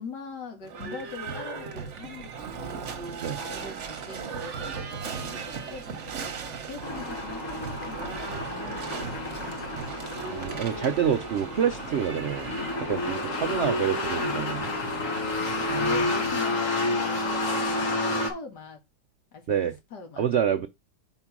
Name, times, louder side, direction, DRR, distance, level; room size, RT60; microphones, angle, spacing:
voice 1, 0.0-3.0 3.4-10.0 13.1-14.3 14.7-15.1 15.8-18.8 19.3-20.3, left 4 dB, 70° left, 2.2 m, -43 dB
Livestock farm animals working animals / Bell, 0.6-16.5, right 5 dB, 50° right, 1.2 m, -38 dB
sound 1, 6.8-18.3, left 2 dB, 50° left, 1.8 m, -30 dB
voice 2, 10.3-12.5 12.8-14.8 15.7-16.1 18.1-18.3 19.5-19.7 20.2-20.7, right 8 dB, 75° right, 0.6 m, -27 dB
4.9 x 4.4 x 5.9 m
omnidirectional pair, 1.9 m